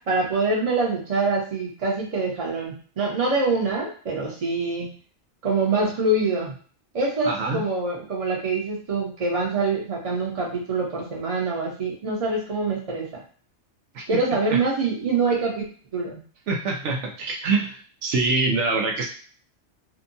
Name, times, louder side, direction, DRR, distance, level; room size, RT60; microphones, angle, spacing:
voice 1, 0.1-4.9 5.4-6.5 6.9-13.2 14.1-15.7 15.9-16.2, right 3 dB, 35° right, -2 dB, 0.7 m, -25 dB
voice 2, 7.2-7.6 13.9-14.1 14.5-14.6 16.5-19.1, right 3 dB, 75° right, 1 dB, 0.9 m, -25 dB
2.7 x 2.2 x 2.6 m, 0.43 s
omnidirectional pair, 1.2 m